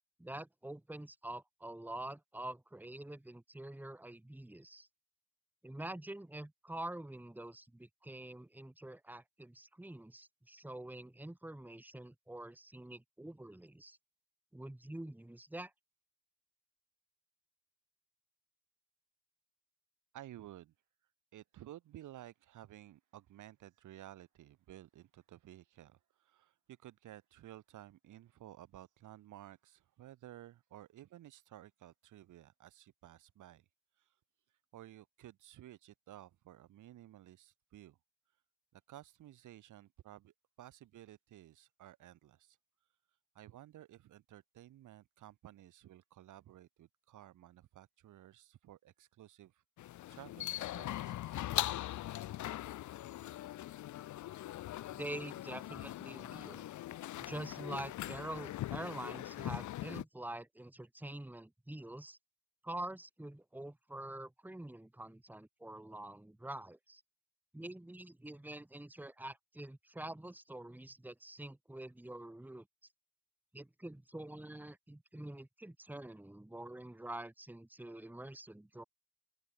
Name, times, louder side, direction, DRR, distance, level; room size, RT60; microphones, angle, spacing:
voice 1, 0.2-4.9 5.6-14.0 14.5-15.7 54.9-56.7 57.2-62.2 62.6-67.0 67.5-72.7 73.5-78.8, right 1 dB, 5° right, 2.0 m, -46 dB
voice 2, 20.1-20.7 21.3-33.6 34.0-34.1 34.7-38.0 38.7-42.6 43.3-49.6 50.1-51.4, right 13 dB, 80° right, 6.5 m, -55 dB
sound 1, 49.8-60.0, left 14 dB, 70° left, 0.9 m, -41 dB
open air
cardioid pair, 90°, 30 cm